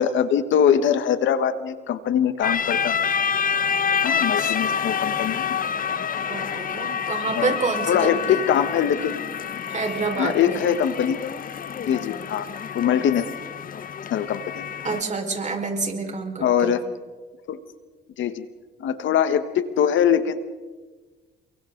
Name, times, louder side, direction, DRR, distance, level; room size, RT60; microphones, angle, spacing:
voice 1, 0.0-3.0 4.0-5.6 7.3-7.5 7.9-9.2 10.2-11.2 11.9-12.5 12.7-13.3 14.1-14.7 16.4-16.8 17.5-17.6 18.2-18.5 18.8-20.4, left 8 dB, 75° left, 11 dB, 1.4 m, -22 dB
sound 1, 2.4-15.0, left 7 dB, 45° left, 0.8 m, -27 dB
voice 2, 6.2-8.4 9.7-10.6 14.8-16.8, right 4 dB, 35° right, 3 dB, 4.9 m, -28 dB
29.5 x 23.0 x 3.9 m, 1.3 s
cardioid pair, 90°, 20 cm